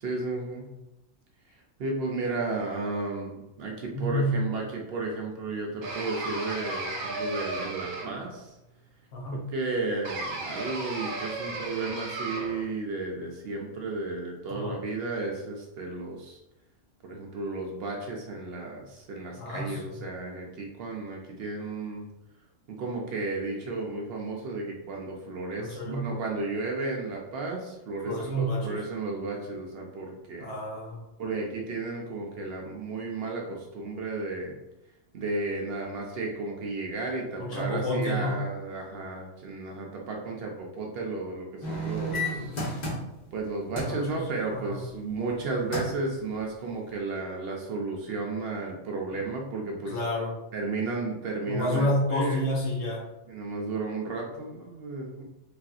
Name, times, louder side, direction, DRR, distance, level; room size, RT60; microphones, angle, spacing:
voice 1, 0.0-0.7 1.8-8.5 9.3-16.4 17.0-22.1 22.7-30.6 31.2-34.6 35.1-42.6 43.3-50.0 50.5-52.4 53.3-55.2, right 3 dB, 65° right, 0 dB, 0.6 m, -33 dB
voice 2, 3.9-4.4 9.1-9.4 14.5-14.7 19.4-19.8 25.6-26.1 28.0-28.8 30.4-31.0 37.4-38.3 43.9-44.2 44.7-44.8 49.9-50.3 51.5-53.0, equal, 65° left, -3 dB, 1.1 m, -29 dB
sound 1, 5.8-8.4 10.0-12.7, right 2 dB, 90° right, 1.1 m, -34 dB
sound 2, 41.6-43.4 43.8-44.0 45.3-45.4 45.7-46.1 46.6-46.7, equal, 40° left, 0.8 m, -31 dB
3.2 x 2.5 x 2.4 m, 0.93 s
omnidirectional pair, 1.5 m